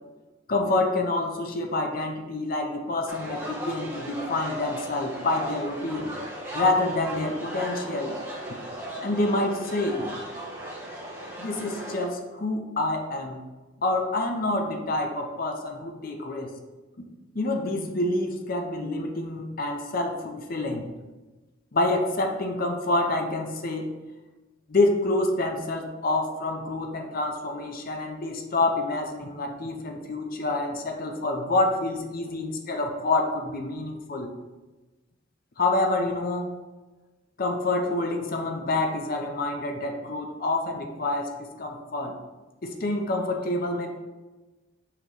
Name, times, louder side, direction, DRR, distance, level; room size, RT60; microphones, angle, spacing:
voice 1, 0.5-6.1 6.5-8.2 9.0-10.1 11.4-13.4 13.8-16.5 17.3-20.9 21.7-23.9 24.7-34.3 35.6-36.5 37.4-42.2 42.6-43.9, left 2 dB, 45° left, 3 dB, 0.6 m, -27 dB
sound 1, 3.1-12.1, equal, 10° right, 1.1 m, -36 dB
5.7 x 3.1 x 5.4 m, 1.2 s
head